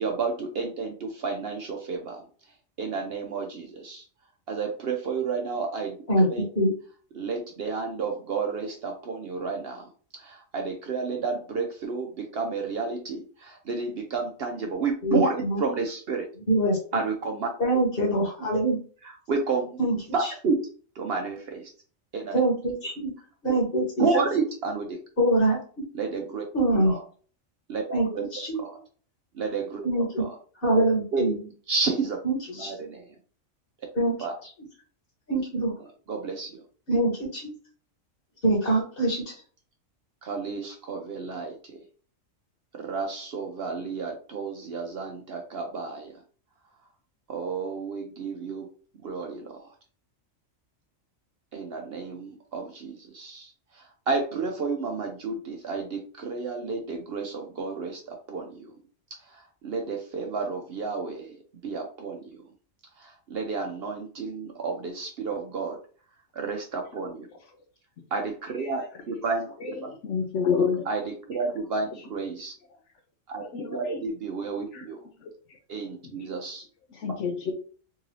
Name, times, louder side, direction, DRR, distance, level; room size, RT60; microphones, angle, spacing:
voice 1, 0.0-2.2 2.8-4.0 4.5-6.4 7.1-9.9 10.1-16.3 16.9-17.5 19.0-19.8 20.1-20.6 21.0-21.7 22.1-22.4 23.5-23.6 24.0-25.0 25.9-26.5 26.8-27.0 27.7-27.8 28.1-28.2 28.5-28.8 29.3-30.3 31.1-32.2 32.5-33.2 34.2-34.4 36.1-36.6 40.2-41.8 42.7-46.1 47.3-48.7 49.0-49.7 51.5-58.7 59.2-62.5 63.0-65.8 66.3-67.3 68.1-69.5 69.8-69.9 70.9-72.5 73.3-73.4 73.7-75.0 75.7-76.6, right 4 dB, 60° right, 3 dB, 0.7 m, -31 dB
voice 2, 15.0-15.6 16.5-17.0 17.6-18.8 19.8-19.9 22.3-23.1 23.4-24.1 25.2-25.6 26.5-26.9 27.9-28.6 29.8-30.2 30.6-31.3 32.2-32.7 33.9-34.1 35.3-35.7 36.9-37.5 38.4-39.2, right 1 dB, 45° left, -2 dB, 1.6 m, -24 dB
voice 3, 69.6-70.9 73.4-74.0 74.7-74.9 75.2-75.3 76.9-77.5, left 6 dB, 70° left, 5 dB, 0.9 m, -28 dB
3.7 x 2.6 x 3.1 m, 0.42 s
omnidirectional pair, 1.3 m